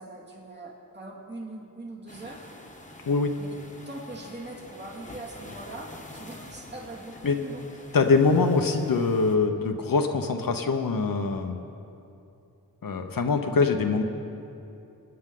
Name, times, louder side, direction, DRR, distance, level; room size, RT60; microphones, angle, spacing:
voice 1, 0.0-2.5 3.4-3.5 3.9-7.7, right 2 dB, 30° right, -3 dB, 2.4 m, -41 dB
sound 1, 2.1-9.4, left 1 dB, 20° left, 1.3 m, -46 dB
voice 2, 7.9-11.6 12.8-14.0, left 4 dB, 75° left, 5 dB, 0.9 m, -23 dB
23.5 x 9.7 x 3.8 m, 2.8 s
wide cardioid pair, 75°, 35 cm